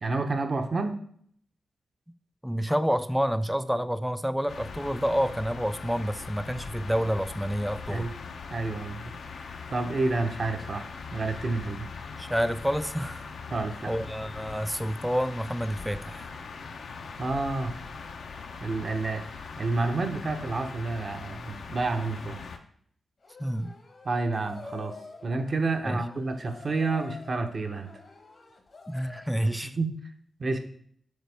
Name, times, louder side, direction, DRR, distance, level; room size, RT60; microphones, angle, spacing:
voice 1, 0.0-1.0 7.9-8.1 8.5-9.1 9.7-11.9 13.5-13.9 17.2-17.7 18.6-22.4 24.0-24.9 25.2-27.9 29.6-29.9 30.4-30.6, right 3 dB, 55° right, 6 dB, 0.8 m, -29 dB
voice 2, 2.4-8.1 12.2-13.3 13.9-16.4 23.4-23.7 25.8-26.0 28.9-29.8, equal, ahead, 13 dB, 0.4 m, -28 dB
sound 1, 4.5-22.6, left 5 dB, 80° left, 0.6 m, -41 dB
sound 2, 23.2-29.4, left 3 dB, 60° left, 1.0 m, -47 dB
6.5 x 4.1 x 3.5 m, 0.62 s
cardioid pair, 70°, 0 cm